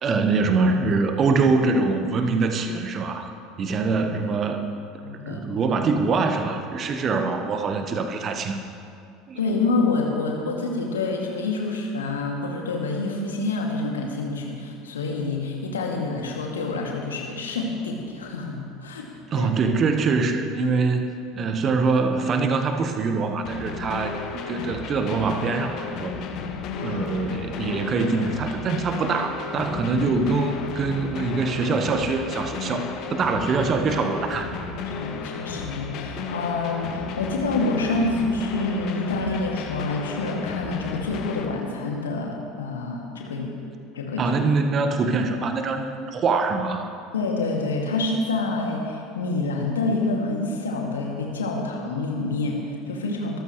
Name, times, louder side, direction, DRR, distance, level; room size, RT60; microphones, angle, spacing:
voice 1, 0.0-3.3 3.6-4.6 5.3-8.6 9.3-9.4 19.3-21.1 21.3-26.1 26.8-34.5 44.2-46.9, right 4 dB, 35° right, 7 dB, 1.3 m, -24 dB
voice 2, 5.0-5.5 9.4-19.1 19.3-19.5 26.7-27.0 34.8-43.5 43.9-44.4 47.1-53.4, left 3 dB, 75° left, -1 dB, 2.4 m, -27 dB
sound 1, 23.4-41.4, left 5 dB, 50° left, 1.5 m, -33 dB
25.0 x 14.0 x 3.2 m, 2.4 s
figure-of-eight pair, 70°, 0 cm